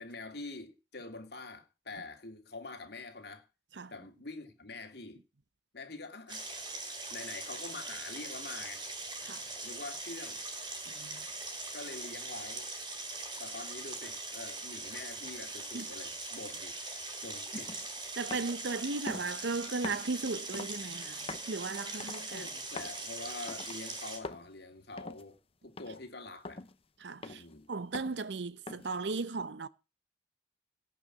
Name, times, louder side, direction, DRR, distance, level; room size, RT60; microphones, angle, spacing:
voice 1, 0.0-3.5 3.9-5.2 5.7-6.5 7.1-8.9 9.6-10.4 11.7-12.7 13.4-16.7 17.2-17.8 22.3-25.4 25.6-26.6 27.2-27.7, left 3 dB, 65° left, 2.5 m, -45 dB
sound 1, 6.3-24.2, right 2 dB, 25° right, 4.2 m, -41 dB
voice 2, 10.9-11.3 15.7-15.9 18.2-21.2 21.5-22.5 27.0-27.4 27.7-29.7, right 3 dB, 75° right, 0.8 m, -36 dB
sound 2, 17.5-17.9 18.3-18.6 19.1-19.4 19.8-20.1 20.5-20.8 21.3-21.5 22.0-22.3 22.8-23.0 23.5-23.8 24.2-24.5 25.0-25.2 25.8-26.0 26.4-26.7 27.2-27.5 27.9-28.2 28.7-29.0, left 3 dB, 35° left, 0.8 m, -43 dB
17.5 x 5.8 x 7.6 m
head